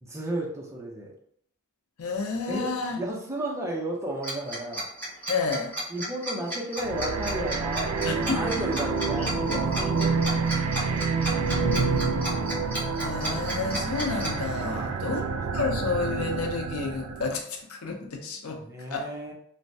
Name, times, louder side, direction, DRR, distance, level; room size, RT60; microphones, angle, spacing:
voice 1, 0.0-1.1 2.5-4.9 5.9-10.2 10.5-10.6 11.1-12.4 14.8-15.4 18.5-19.3, right 1 dB, 15° right, -1 dB, 0.5 m, -34 dB
voice 2, 2.0-3.0 5.3-5.7 8.0-8.4 9.2-9.7 13.0-15.2 15.5-18.6 18.9-19.1, left 4 dB, 75° left, 3 dB, 0.6 m, -30 dB
Tick-tock, 4.2-14.3, right 1 dB, 5° left, 1.0 m, -32 dB
sound 1, 6.8-17.4, right 4 dB, 90° right, 0.4 m, -28 dB
3.2 x 2.1 x 2.6 m, 0.67 s
head